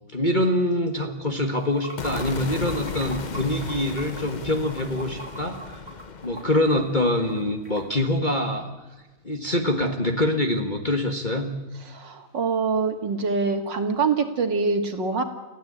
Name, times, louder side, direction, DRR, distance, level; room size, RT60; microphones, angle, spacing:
voice 1, 0.1-5.8 6.2-8.7 9.2-11.5, left 1 dB, 25° left, 4 dB, 1.7 m, -25 dB
Water / Sink (filling or washing), 1.5-8.0, right 1 dB, 20° right, 5.1 m, -42 dB
sound 1, 2.0-8.2, left 4 dB, 45° left, 0.5 m, -36 dB
voice 2, 11.8-15.2, right 4 dB, 60° right, 6 dB, 2.5 m, -25 dB
29.5 x 15.5 x 8.8 m, 1.2 s
omnidirectional pair, 2.2 m